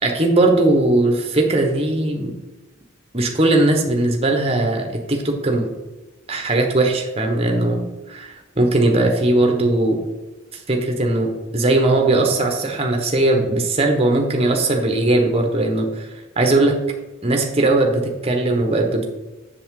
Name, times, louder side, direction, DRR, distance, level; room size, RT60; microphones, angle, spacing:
voice 1, 0.0-2.3 3.1-5.7 6.3-10.0 10.5-16.1 16.4-16.8 17.2-19.1, right 2 dB, 30° right, 3 dB, 1.1 m, -19 dB
7.7 x 6.8 x 3.8 m, 1.1 s
head